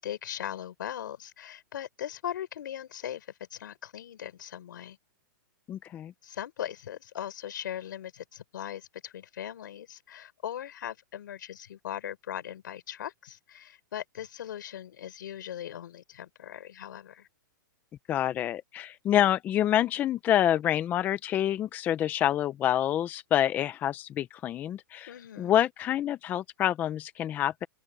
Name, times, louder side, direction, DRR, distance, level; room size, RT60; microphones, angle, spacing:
voice 1, 0.0-5.0 6.2-17.3 25.1-25.5, left 10 dB, 70° left, 4.5 m, -39 dB
voice 2, 5.7-6.1 18.1-27.7, left 11 dB, 15° left, 0.5 m, -27 dB
open air
hypercardioid pair, 160°, 11 cm